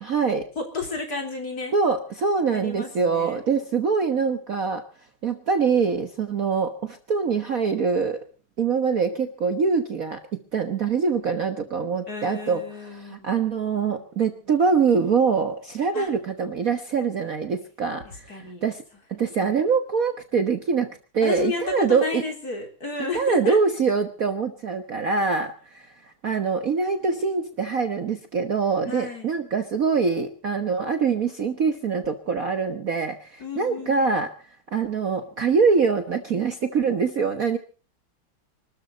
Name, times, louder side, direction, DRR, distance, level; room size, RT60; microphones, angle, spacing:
voice 1, 0.0-0.5 1.7-4.8 5.2-8.2 8.6-18.8 19.1-22.2 23.1-34.3 34.7-37.6, right 5 dB, 45° right, 7 dB, 1.4 m, -24 dB
voice 2, 0.6-1.7 2.5-3.4 12.1-13.3 15.9-16.1 18.0-18.6 19.4-19.5 21.2-23.6 28.9-29.3 33.4-34.1, left 4 dB, 40° left, 3 dB, 4.1 m, -32 dB
25.0 x 13.0 x 3.9 m, 0.38 s
omnidirectional pair, 2.4 m